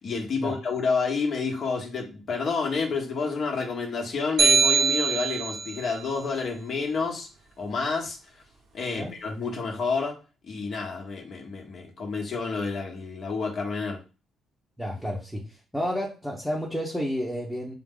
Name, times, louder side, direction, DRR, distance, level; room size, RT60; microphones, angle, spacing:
voice 1, 0.0-7.3 7.6-8.2 8.7-10.2 10.4-14.0, left 4 dB, 50° left, 1 dB, 1.1 m, -29 dB
sound 1, 4.4-5.8, right 6 dB, 70° right, 0.9 m, -22 dB
voice 2, 14.8-15.4 15.7-17.7, equal, ahead, -3 dB, 0.9 m, -30 dB
4.7 x 2.1 x 3.7 m, 0.31 s
cardioid pair, 90°, 0 cm